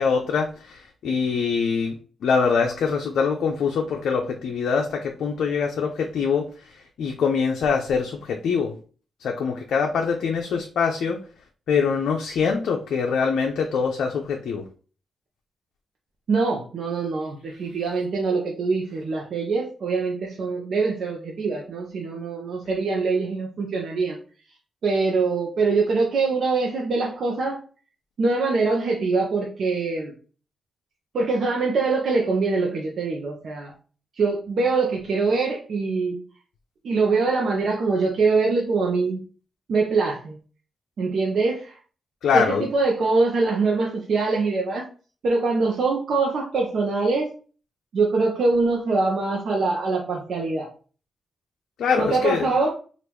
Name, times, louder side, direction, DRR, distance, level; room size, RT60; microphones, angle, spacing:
voice 1, 0.0-2.0 2.2-6.5 7.0-8.7 9.2-11.2 11.7-14.6 42.2-42.6 51.8-52.5, left 5 dB, 80° left, 2 dB, 0.4 m, -23 dB
voice 2, 16.3-24.2 24.8-27.6 28.2-30.1 31.1-33.7 34.2-36.2 36.8-39.2 39.7-40.4 41.0-41.8 42.3-44.9 45.2-47.3 47.9-50.7 52.0-52.7, right 3 dB, 70° right, -1 dB, 0.7 m, -23 dB
3.0 x 2.5 x 3.3 m, 0.39 s
supercardioid pair, 50°, 0 cm